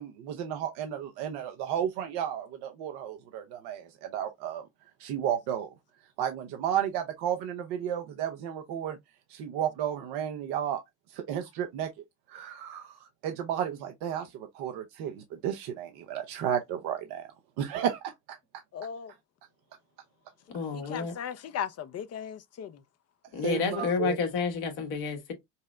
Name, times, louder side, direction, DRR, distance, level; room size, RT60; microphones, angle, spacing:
voice 1, 0.0-4.6 5.0-5.7 6.2-9.0 9.3-10.8 11.1-11.9 12.3-17.3 17.6-18.4 23.4-24.2, right 9 dB, 70° right, 0.8 m, -33 dB
voice 2, 18.7-19.1 20.7-22.8, left 8 dB, 40° left, 0.7 m, -37 dB
voice 3, 20.5-21.1 23.3-25.3, left 5 dB, 70° left, 1.6 m, -30 dB
5.3 x 2.0 x 2.4 m
hypercardioid pair, 70°, 41 cm